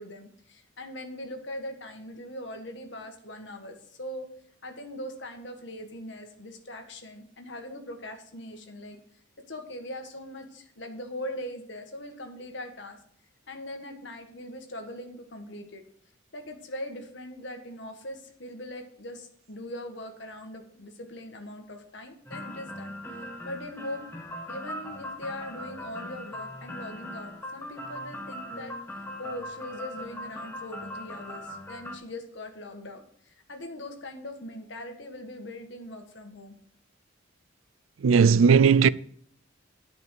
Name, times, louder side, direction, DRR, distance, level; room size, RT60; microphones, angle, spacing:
voice 1, 0.0-4.3 4.6-9.0 9.5-13.0 13.5-15.8 16.3-22.9 23.4-24.1 24.5-28.7 29.2-36.5, left 1 dB, 60° left, 1.7 m, -41 dB
sound 1, 22.3-32.0, left 1 dB, 10° left, 1.2 m, -40 dB
voice 2, 38.0-38.9, right 6 dB, 85° right, 0.4 m, -17 dB
10.5 x 5.5 x 7.5 m
head